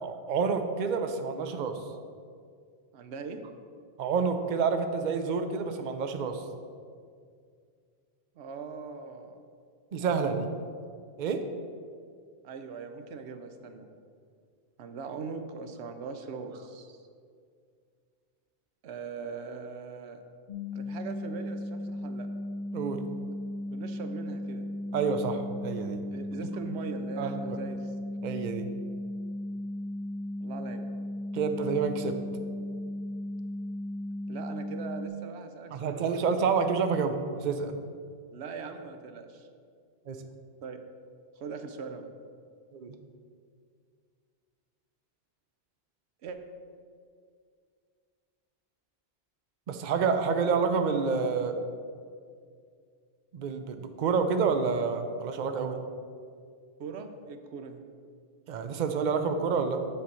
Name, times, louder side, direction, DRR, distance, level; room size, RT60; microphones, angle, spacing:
voice 1, 0.0-1.8 4.0-6.4 9.9-10.5 11.2-11.4 22.7-23.0 24.9-26.0 27.2-27.6 28.2-28.7 31.3-32.1 35.7-37.8 40.1-40.2 42.7-43.0 49.7-51.6 53.3-55.8 58.5-59.8, right 5 dB, 50° right, 7 dB, 0.7 m, -28 dB
voice 2, 2.9-3.4 8.4-9.5 10.0-10.4 12.4-13.9 14.8-17.0 18.8-20.2 20.7-22.3 23.7-24.7 26.1-27.9 30.4-30.9 34.3-36.5 38.3-39.5 40.6-40.8 41.4-42.1 46.2-46.4 56.8-57.8, right 5 dB, 90° right, 8 dB, 0.9 m, -41 dB
sound 1, 20.5-35.1, left 1 dB, 50° left, 1.4 m, -36 dB
7.8 x 4.4 x 6.8 m, 2.2 s
omnidirectional pair, 1.1 m